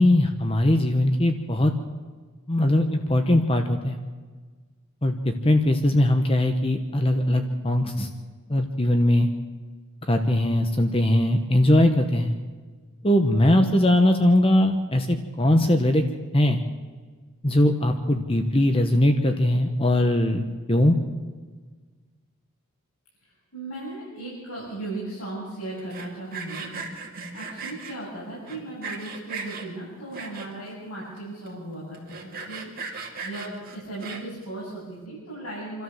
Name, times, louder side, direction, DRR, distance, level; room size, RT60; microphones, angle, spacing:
voice 1, 0.0-1.7 2.5-4.0 5.0-8.1 8.5-9.3 10.1-12.3 13.0-16.0 16.3-16.6 17.4-20.4 20.7-21.0, left 1 dB, 25° left, 6 dB, 1.1 m, -20 dB
voice 2, 23.5-26.7 27.0-27.1 27.3-35.8, right 2 dB, 75° left, -7 dB, 7.6 m, -37 dB
Sawing, 25.8-27.9 28.5-29.7 30.1-30.7 31.2-31.3 31.5-31.6 31.9-34.4, right 4 dB, 40° right, 2.6 m, -37 dB
27.5 x 13.0 x 7.3 m, 1.5 s
head